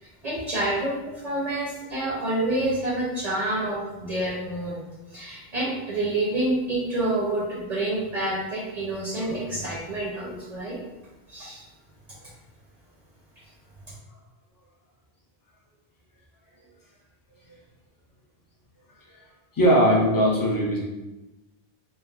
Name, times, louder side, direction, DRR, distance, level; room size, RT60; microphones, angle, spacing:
voice 1, 0.0-4.8 5.1-10.8 11.3-11.6, right 1 dB, 50° right, -5 dB, 0.6 m, -28 dB
voice 2, 19.5-20.8, equal, 30° left, -4 dB, 0.4 m, -19 dB
3.1 x 2.0 x 2.3 m, 1.1 s
omnidirectional pair, 1.1 m